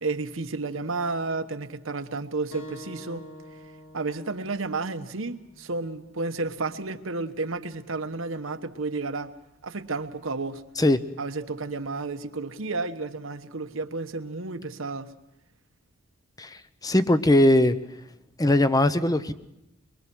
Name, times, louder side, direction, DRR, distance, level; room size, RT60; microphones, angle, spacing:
voice 1, 0.0-3.3 3.9-9.3 9.6-10.6 11.2-15.1, right 3 dB, 80° right, 1.2 m, -32 dB
sound 1, 2.5-7.6, equal, 90° left, 2.4 m, -48 dB
voice 2, 16.4-17.8 18.4-19.3, left 1 dB, 20° left, 0.8 m, -20 dB
23.5 x 23.0 x 6.2 m
head